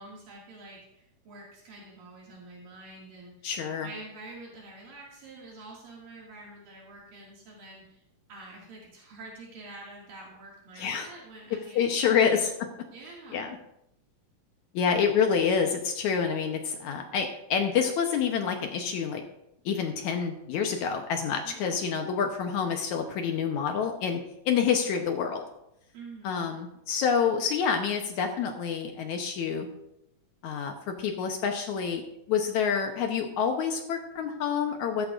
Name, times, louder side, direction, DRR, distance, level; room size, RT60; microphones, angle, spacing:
voice 1, 0.0-3.5 3.8-8.0 8.3-12.3 12.9-13.5 21.4-21.8 25.9-26.6, right 2 dB, 75° right, -4 dB, 3.8 m, -47 dB
voice 2, 3.4-3.9 10.8-11.1 11.8-12.5 13.3-13.5 14.7-19.2 19.7-24.2 24.5-25.4 26.2-29.7 30.4-35.1, left 6 dB, 70° left, 4 dB, 2.0 m, -27 dB
15.0 x 13.0 x 2.5 m, 0.81 s
omnidirectional pair, 4.1 m